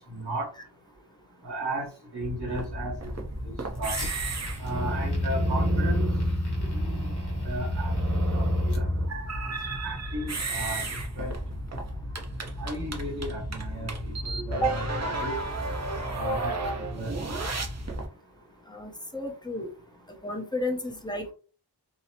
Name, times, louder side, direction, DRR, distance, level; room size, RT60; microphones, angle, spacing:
voice 1, 0.1-0.5 1.4-1.8 2.1-3.1 3.4-3.5 3.8-3.9 4.6-6.1 6.7-7.1 7.4-8.8 9.8-10.8 11.2-11.3 12.6-15.4 16.1-17.5, right 1 dB, 85° right, -5 dB, 1.2 m, -35 dB
sound 1, 2.2-18.1, equal, 40° right, 0.6 m, -30 dB
Fire, 3.1-9.1, equal, 65° left, 0.9 m, -44 dB
voice 2, 18.7-19.7 20.2-21.3, equal, 10° left, 1 dB, 0.6 m, -31 dB
2.8 x 2.0 x 2.8 m, 0.37 s
wide cardioid pair, 45°, 42 cm